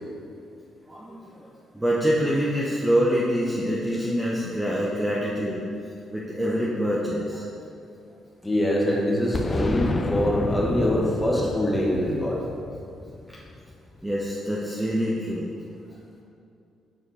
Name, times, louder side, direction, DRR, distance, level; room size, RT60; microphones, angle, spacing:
voice 1, 0.9-1.5 1.7-5.6 6.1-7.5 14.0-15.4, equal, 10° right, -5 dB, 0.9 m, -25 dB
voice 2, 8.4-12.4, equal, 10° left, -4 dB, 1.6 m, -24 dB
Boom, 9.3-14.0, left 3 dB, 30° left, 0.3 m, -30 dB
6.4 x 5.1 x 4.9 m, 2.5 s
cardioid pair, 90°, 0 cm